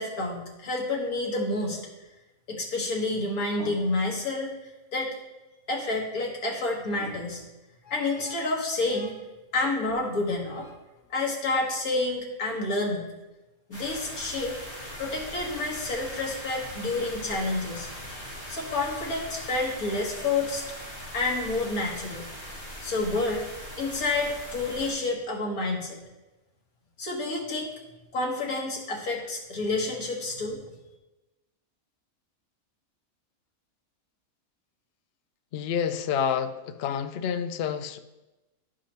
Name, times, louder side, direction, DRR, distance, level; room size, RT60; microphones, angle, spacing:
voice 1, 0.0-1.8 2.5-4.6 4.9-5.2 5.7-7.4 7.9-9.2 9.5-10.7 11.1-13.1 13.7-14.6 15.0-17.9 18.5-20.6 21.1-22.3 22.8-23.5 23.8-26.0 27.0-27.7 28.1-30.6, left 2 dB, 90° left, -1 dB, 1.9 m, -29 dB
sound 1, 13.7-24.9, equal, 20° left, 2.7 m, -40 dB
voice 2, 35.5-38.0, left 7 dB, 65° left, 9 dB, 0.6 m, -28 dB
11.5 x 4.9 x 2.9 m, 1.1 s
omnidirectional pair, 1.5 m